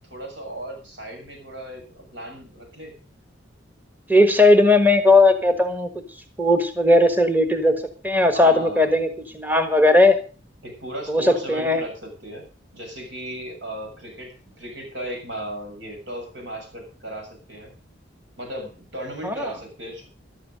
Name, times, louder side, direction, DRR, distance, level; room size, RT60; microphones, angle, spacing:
voice 1, 0.0-2.9 8.3-8.9 9.9-10.0 10.6-12.5 12.7-17.7 18.4-20.1, right 1 dB, 75° right, 3 dB, 7.0 m, -36 dB
voice 2, 4.1-6.0 6.4-7.7 8.0-9.1 9.3-10.2 11.1-11.8 19.2-19.5, left 2 dB, 10° right, 8 dB, 1.5 m, -17 dB
14.0 x 12.0 x 5.2 m, 0.35 s
head